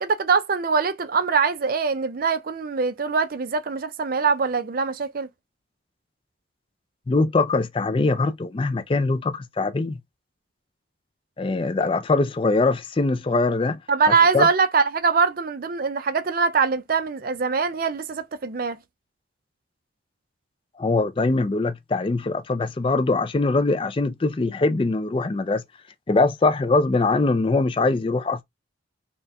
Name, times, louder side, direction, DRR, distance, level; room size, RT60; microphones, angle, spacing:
voice 1, 0.0-5.3 13.9-18.8, right 5 dB, 45° right, 0.4 m, -23 dB
voice 2, 7.1-10.0 11.4-13.8 14.3-14.5 20.8-25.6 26.1-28.4, left 3 dB, 25° left, 0.3 m, -22 dB
4.1 x 2.2 x 3.4 m
head